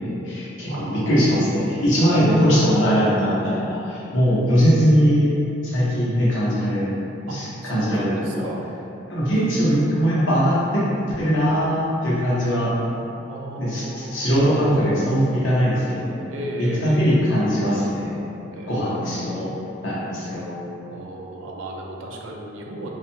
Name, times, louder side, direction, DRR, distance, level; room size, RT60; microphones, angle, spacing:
voice 1, 0.0-5.3 5.6-8.5 9.1-10.8 11.2-12.7 13.6-16.2 16.6-18.2 18.7-19.5 19.8-20.6, equal, 80° left, -8 dB, 0.8 m, -21 dB
voice 2, 0.7-1.1 2.0-2.1 7.3-8.7 9.3-10.1 13.3-14.4 16.3-17.2 18.5-19.3 20.9-22.9, right 1 dB, 75° right, -1 dB, 0.4 m, -35 dB
2.5 x 2.3 x 2.7 m, 2.8 s
head